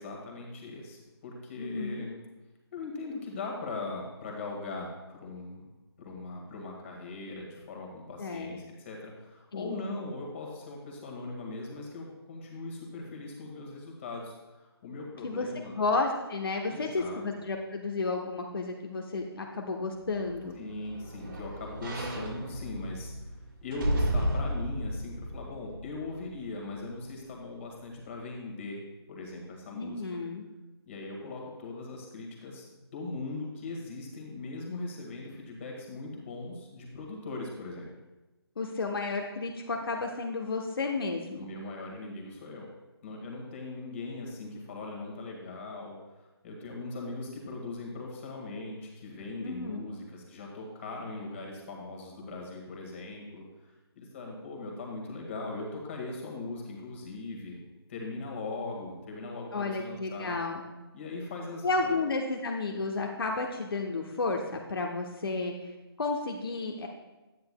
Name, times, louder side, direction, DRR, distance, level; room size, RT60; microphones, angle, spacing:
voice 1, 0.0-2.2 2.7-5.6 6.0-15.8 16.7-17.2 20.6-23.3 23.6-28.8 29.1-30.0 30.9-37.9 41.4-42.7 43.0-57.6 57.9-60.4 60.9-62.0, left 3 dB, 30° left, 0 dB, 1.8 m, -40 dB
voice 2, 1.6-2.0 8.2-8.6 9.5-9.7 15.2-15.5 15.7-20.5 29.7-30.4 38.6-41.5 49.4-49.9 59.5-60.6 61.6-66.9, left 3 dB, 60° left, 1 dB, 1.0 m, -32 dB
sound 1, 20.1-26.4 26.9-27.0, equal, 50° right, 1.8 m, -34 dB
10.5 x 9.4 x 2.2 m, 1.1 s
figure-of-eight pair, 155°, 14 cm